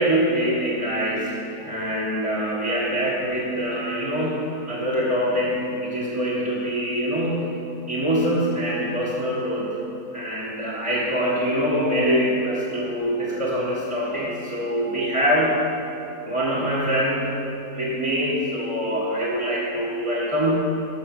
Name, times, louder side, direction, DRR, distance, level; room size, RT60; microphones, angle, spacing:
voice 1, 0.0-7.5 7.9-9.7 10.1-15.6 16.2-20.6, equal, 20° right, -6 dB, 1.6 m, -24 dB
13.5 x 6.4 x 6.6 m, 2.7 s
omnidirectional pair, 1.7 m